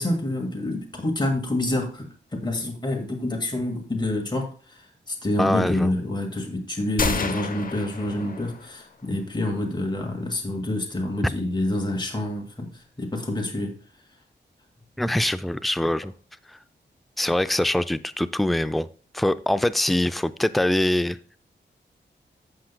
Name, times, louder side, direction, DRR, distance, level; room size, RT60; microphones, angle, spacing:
voice 1, 0.0-13.8, left 1 dB, 25° left, 2 dB, 1.9 m, -27 dB
voice 2, 5.4-5.9 15.0-16.1 16.5-16.6 17.2-18.9 19.1-21.2, left 1 dB, ahead, 13 dB, 0.4 m, -23 dB
sound 1, 7.0-8.9, left 4 dB, 50° left, 0.8 m, -29 dB
15.5 x 5.7 x 2.2 m, 0.39 s
cardioid pair, 60°, 19 cm